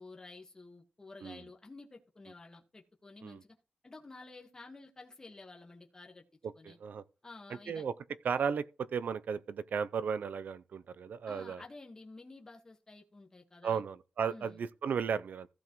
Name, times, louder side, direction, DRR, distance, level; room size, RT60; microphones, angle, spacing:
voice 1, 0.0-3.5 3.8-6.2 6.5-6.8 7.2-7.8 11.3-13.8 14.3-14.6, left 3 dB, 20° left, 1.5 m, -51 dB
voice 2, 6.4-7.0 7.7-7.9 8.2-11.6 13.6-15.5, right 6 dB, 70° right, 0.6 m, -35 dB
15.5 x 7.0 x 3.1 m
wide cardioid pair, 130°, 3 cm